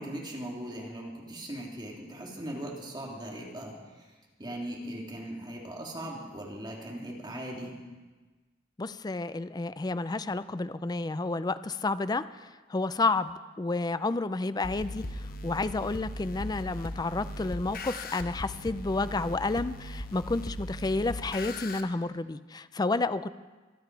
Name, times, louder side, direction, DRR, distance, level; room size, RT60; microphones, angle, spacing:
voice 1, 0.0-4.1 4.4-7.7, right 1 dB, 25° right, -2 dB, 2.8 m, -39 dB
voice 2, 8.8-12.3 12.7-23.3, left 3 dB, 20° left, 14 dB, 0.4 m, -30 dB
sound 1, 14.6-21.8, left 1 dB, 55° left, 0.9 m, -39 dB
24.0 x 8.9 x 4.7 m, 1.3 s
head